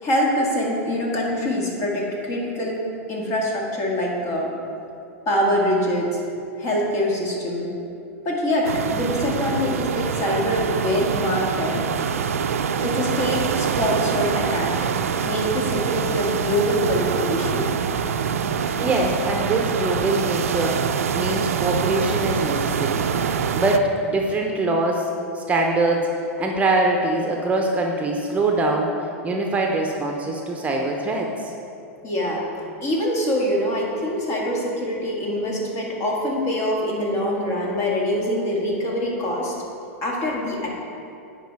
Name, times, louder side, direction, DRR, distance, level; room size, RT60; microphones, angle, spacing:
voice 1, 0.0-2.8 3.1-4.5 5.3-6.2 6.6-7.7 8.2-11.8 12.8-14.8 15.2-17.7 32.0-32.4 32.8-39.5 40.0-40.7, left 1 dB, 40° left, -2 dB, 2.0 m, -24 dB
sound 1, 8.6-23.8, right 7 dB, 85° right, 0.4 m, -25 dB
voice 2, 18.8-20.8 21.1-23.1 23.6-26.1 26.4-28.9 29.2-31.5, right 2 dB, 20° right, 1 dB, 0.8 m, -23 dB
9.2 x 5.0 x 4.7 m, 2.6 s
hypercardioid pair, 110°, 8 cm